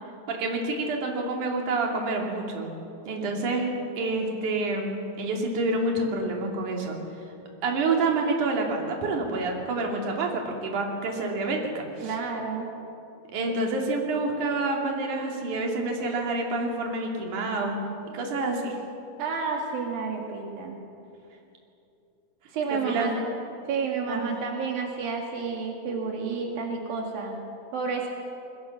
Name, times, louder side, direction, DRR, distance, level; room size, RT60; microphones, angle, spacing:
voice 1, 0.3-2.7 3.1-7.0 7.6-12.1 13.3-17.8 18.1-18.8 22.7-23.1 24.1-24.2, right 2 dB, 60° right, 0 dB, 4.2 m, -28 dB
voice 2, 12.0-12.7 19.2-20.8 22.5-23.3 23.7-27.4 27.7-28.1, right 5 dB, 80° right, 1 dB, 4.0 m, -30 dB
27.0 x 22.0 x 7.3 m, 2.7 s
omnidirectional pair, 4.1 m